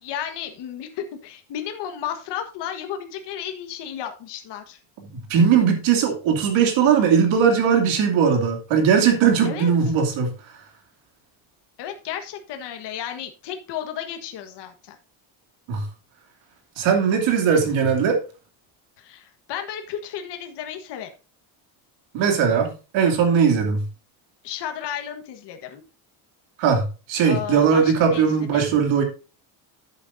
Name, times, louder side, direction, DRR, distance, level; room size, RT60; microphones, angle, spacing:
voice 1, 0.0-4.8 9.4-9.7 11.8-15.0 19.0-21.1 24.4-25.8 27.2-28.8, left 9 dB, 55° left, 6 dB, 1.5 m, -33 dB
voice 2, 5.3-10.3 15.7-15.8 16.8-18.2 22.1-23.8 26.6-29.0, right 6 dB, 70° right, 4 dB, 2.7 m, -19 dB
11.5 x 8.3 x 2.6 m, 0.33 s
cardioid pair, 170°, 48 cm